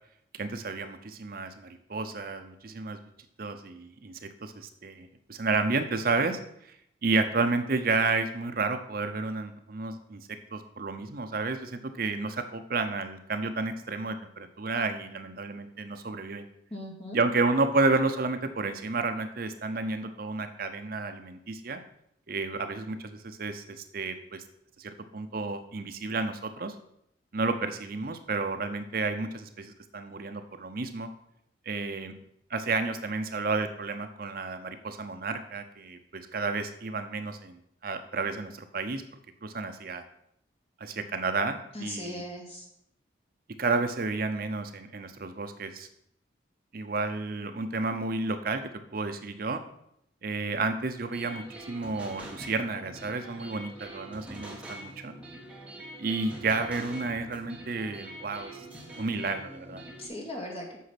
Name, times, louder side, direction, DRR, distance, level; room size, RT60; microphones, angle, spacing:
voice 1, 0.3-3.0 3.4-6.7 7.0-10.2 10.5-16.4 17.1-21.8 22.3-24.4 24.8-26.7 27.3-31.1 31.7-32.2 32.5-39.0 39.4-40.0 40.8-42.2 43.6-45.9 46.7-48.6 48.9-49.6 50.2-55.1 56.0-58.6 59.0-59.8, right 3 dB, 50° right, 8 dB, 0.6 m, -31 dB
voice 2, 16.7-17.2 41.7-42.7 60.0-60.8, left 1 dB, 30° left, -2 dB, 2.3 m, -38 dB
sound 1, 51.1-60.1, right 1 dB, 5° right, 1.5 m, -44 dB
8.3 x 6.0 x 5.9 m, 0.74 s
head